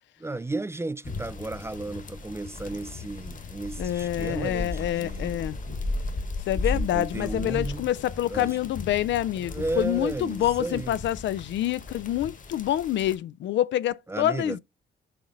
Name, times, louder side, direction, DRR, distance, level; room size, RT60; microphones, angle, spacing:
voice 1, 0.2-5.4 6.5-7.8 8.3-8.6 9.4-10.9 14.1-14.6, right 2 dB, 15° right, 0.4 m, -34 dB
sound 1, 1.0-13.2, left 3 dB, 40° left, 1.5 m, -35 dB
voice 2, 3.8-5.6 6.5-14.6, left 12 dB, 65° left, 0.4 m, -27 dB
6.9 x 3.9 x 5.1 m
cardioid pair, 90°, 20 cm